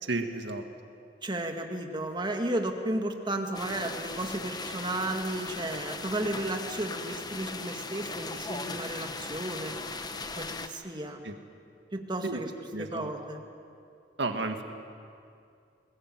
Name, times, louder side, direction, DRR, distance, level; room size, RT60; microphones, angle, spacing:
voice 1, 0.0-0.6 11.2-11.4 12.2-12.4 12.7-13.1 14.2-14.6, right 2 dB, 75° right, 6 dB, 1.9 m, -32 dB
voice 2, 1.2-9.7 10.4-11.2 11.9-12.5 12.8-13.4, right 1 dB, 25° right, 4 dB, 1.9 m, -33 dB
sound 1, 3.5-10.7, left 3 dB, 25° left, 1.0 m, -38 dB
21.0 x 20.0 x 9.3 m, 2.4 s
head